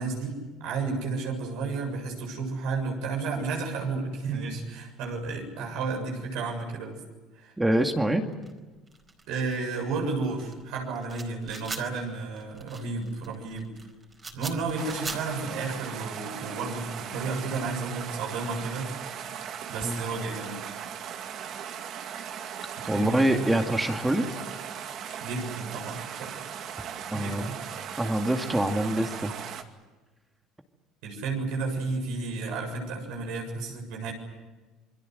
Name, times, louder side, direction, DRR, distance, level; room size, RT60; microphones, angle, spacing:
voice 1, 0.0-7.0 7.4-7.5 9.3-13.7 14.3-18.9 19.7-20.5 22.8-23.5 25.2-26.3 27.1-27.6 31.0-34.1, right 4 dB, 75° right, 1 dB, 7.3 m, -32 dB
voice 2, 7.6-8.3 19.8-20.0 22.9-24.3 27.1-27.5 28.0-29.3, right 1 dB, 10° right, 5 dB, 2.2 m, -25 dB
sound 1, 8.3-15.9, right 3 dB, 25° right, 4.5 m, -42 dB
sound 2, 14.8-29.6, right 8 dB, 55° right, 2.4 m, -38 dB
28.5 x 22.5 x 8.0 m, 1.2 s
cardioid pair, 115°, 0 cm